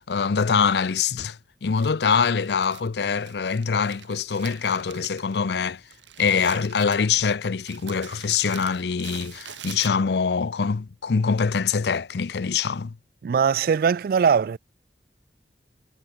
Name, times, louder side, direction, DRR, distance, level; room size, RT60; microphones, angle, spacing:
voice 1, 0.1-5.8 6.2-13.0, left 5 dB, 65° left, 0.5 m, -24 dB
Crumpling crinkling, 1.7-10.3, right 9 dB, 90° right, 1.7 m, -45 dB
voice 2, 13.2-14.6, right 6 dB, 55° right, 0.3 m, -20 dB
head